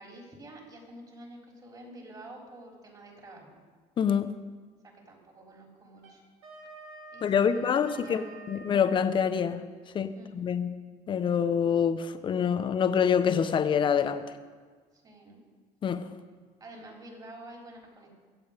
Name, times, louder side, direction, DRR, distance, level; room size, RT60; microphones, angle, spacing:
voice 1, 0.0-3.6 4.8-6.2 7.1-8.4 10.1-10.3 14.9-15.4 16.6-18.1, right 1 dB, 30° right, 0 dB, 3.9 m, -49 dB
voice 2, 4.0-4.3 7.2-9.6 9.9-10.7 11.1-14.3 15.8-16.0, left 7 dB, 40° left, 10 dB, 0.9 m, -26 dB
Wind instrument woodwind instrument, 6.0-9.0, right 3 dB, 85° right, 4.0 m, -48 dB
23.5 x 7.8 x 5.2 m, 1.5 s
cardioid pair, 115°, 13 cm